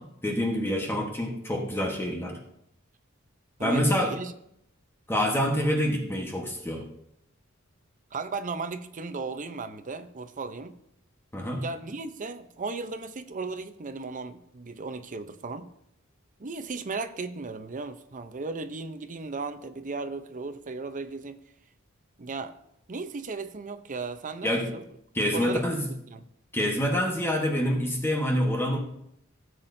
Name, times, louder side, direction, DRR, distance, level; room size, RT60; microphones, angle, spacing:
voice 1, 0.0-2.4 3.6-4.1 5.1-6.9 11.3-11.6 24.4-24.7 25.1-25.9 26.5-28.8, equal, 10° left, 1.2 m, -26 dB
voice 2, 3.6-4.3 8.1-10.7 11.6-15.7 16.4-21.4 22.2-22.5 22.9-24.8 25.3-25.7 26.1-26.2, right 3 dB, 40° right, 0.6 m, -36 dB
17.0 x 7.4 x 2.7 m
head